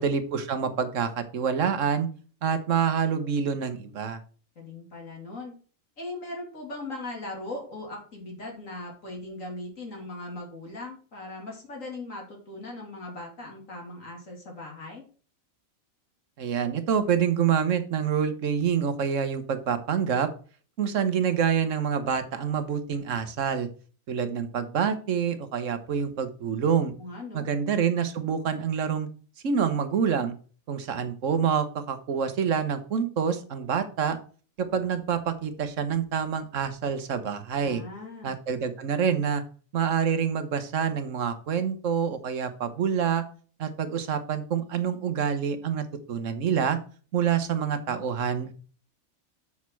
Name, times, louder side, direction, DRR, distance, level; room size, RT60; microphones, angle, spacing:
voice 1, 0.0-2.1 2.4-4.2 16.4-20.3 20.8-23.7 24.1-26.9 27.3-29.1 29.4-30.3 30.7-34.2 34.6-37.8 38.2-39.4 39.7-43.3 43.6-46.8 47.1-48.5, right 7 dB, 65° right, 10 dB, 1.4 m, -27 dB
voice 2, 4.6-5.5 6.0-15.0 27.0-27.5 37.6-38.3 47.7-48.0, left 2 dB, 75° left, -1 dB, 3.1 m, -39 dB
7.2 x 6.5 x 4.6 m, 0.40 s
omnidirectional pair, 1.4 m